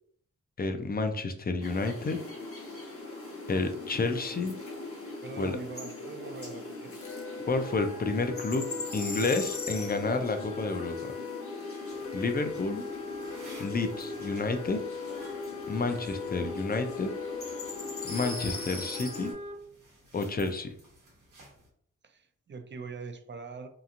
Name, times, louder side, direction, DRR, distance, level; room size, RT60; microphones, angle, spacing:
voice 1, 0.6-2.2 3.5-4.6 5.4-5.5 7.5-8.7 8.9-11.1 12.1-12.8 13.6-14.8 15.7-17.1 18.1-19.3 20.1-20.7, left 3 dB, 30° left, 7 dB, 0.5 m, -30 dB
sound 1, 1.6-19.3, left 3 dB, 45° left, 0.9 m, -40 dB
voice 2, 5.2-7.0 22.0-23.7, right 4 dB, 40° right, 8 dB, 0.4 m, -42 dB
sound 2, 7.0-19.5, left 5 dB, 70° left, 0.8 m, -41 dB
sound 3, 11.8-21.7, right 1 dB, 85° right, 1.0 m, -56 dB
2.9 x 2.4 x 2.4 m, 0.62 s
cardioid pair, 45°, 30 cm